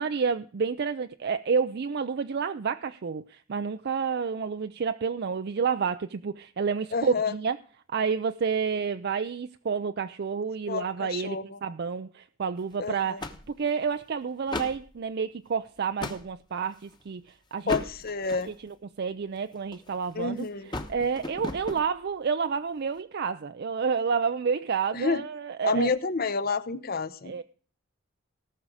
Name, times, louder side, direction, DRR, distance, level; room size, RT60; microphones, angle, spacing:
voice 1, 0.0-7.6 7.9-17.8 18.5-20.5 20.7-25.9 27.3-27.4, right 6 dB, 55° right, 0.4 m, -29 dB
voice 2, 6.9-7.3 10.7-11.6 12.8-13.2 17.7-18.5 20.1-20.8 24.9-25.2 25.6-27.3, left 4 dB, 50° left, 0.8 m, -29 dB
sound 1, 12.6-12.8 13.2-13.9 14.4-14.9 15.5-16.3 16.9-17.1 17.6-18.7 19.4-20.1 20.4-21.9, left 2 dB, 20° left, 1.1 m, -36 dB
18.0 x 6.2 x 4.8 m
head